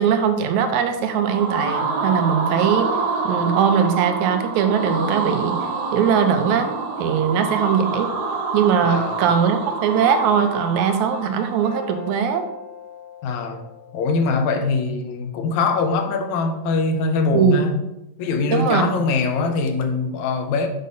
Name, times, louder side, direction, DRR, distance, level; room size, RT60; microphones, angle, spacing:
voice 1, 0.0-2.9 3.2-5.6 5.9-6.7 7.0-8.1 8.5-12.4 17.3-17.7 18.5-19.0, right 7 dB, 85° right, 2.0 m, -20 dB
sound 1, 1.0-11.9, right 4 dB, 65° right, 1.9 m, -27 dB
sound 2, 3.6-4.0 4.6-5.0 5.6-6.0 6.6-7.0 7.6-8.0 8.6-9.0 9.6-14.7, left 5 dB, 50° left, 2.0 m, -41 dB
voice 2, 8.8-9.2 13.2-13.6 13.9-17.8 18.2-20.7, left 4 dB, 80° left, 2.0 m, -22 dB
6.6 x 5.3 x 3.9 m
omnidirectional pair, 3.4 m